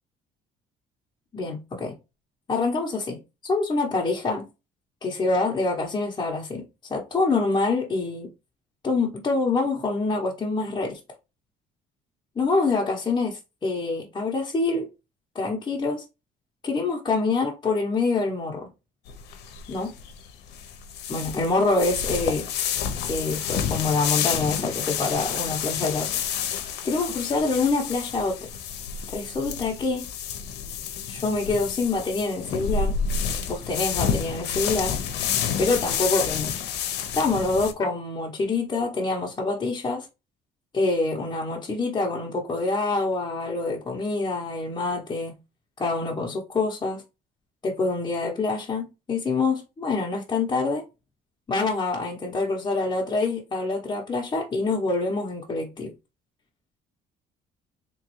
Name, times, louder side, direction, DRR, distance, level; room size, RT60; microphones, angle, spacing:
voice 1, 1.3-2.0 2.5-4.5 5.0-8.3 8.8-11.0 12.4-14.9 15.3-16.0 16.6-18.7 19.7-19.9 21.1-22.5 23.1-26.1 26.8-28.4 29.1-30.1 31.1-33.0 33.5-35.0 35.6-36.5 37.1-40.1 40.7-45.4 45.8-47.0 47.6-50.8 51.5-55.9, left 3 dB, 25° left, 0.9 m, -26 dB
sound 1, 19.1-37.7, left 7 dB, 85° left, 0.7 m, -29 dB
3.6 x 3.0 x 3.0 m
cardioid pair, 110°, 17 cm